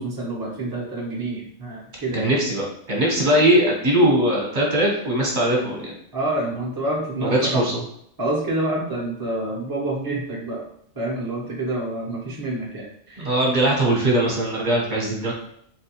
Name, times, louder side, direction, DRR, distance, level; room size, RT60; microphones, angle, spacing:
voice 1, 0.0-2.3 6.1-7.7 8.2-10.6 10.9-13.3 15.2-15.3, right 1 dB, 25° right, -4 dB, 0.6 m, -27 dB
voice 2, 2.1-5.9 7.2-7.8 13.2-15.4, right 1 dB, 40° right, -3 dB, 1.0 m, -20 dB
4.0 x 2.2 x 2.9 m, 0.70 s
omnidirectional pair, 1.3 m